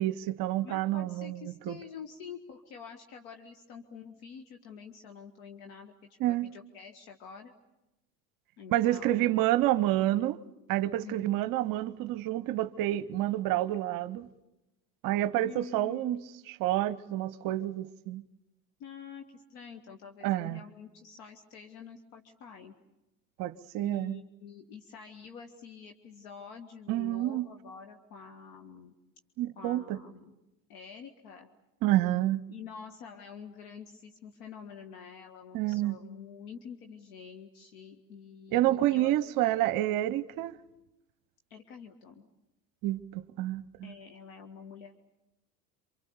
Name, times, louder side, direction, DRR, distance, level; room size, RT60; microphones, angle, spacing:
voice 1, 0.0-1.8 6.2-6.5 8.7-10.4 10.7-14.3 15.0-16.2 16.5-18.2 20.2-20.6 23.4-24.2 26.9-27.5 29.4-30.0 31.8-32.4 35.5-36.0 38.5-40.6 42.8-43.9, right 14 dB, 45° right, 0.9 m, -29 dB
voice 2, 0.6-5.9 6.3-7.5 8.6-9.3 11.0-11.5 15.4-16.3 18.8-22.7 23.8-28.9 29.6-30.3 30.7-31.5 32.5-39.2 41.5-42.3 43.8-44.9, left 6 dB, 60° left, 1.8 m, -47 dB
28.0 x 25.5 x 7.0 m
figure-of-eight pair, 75°, 49 cm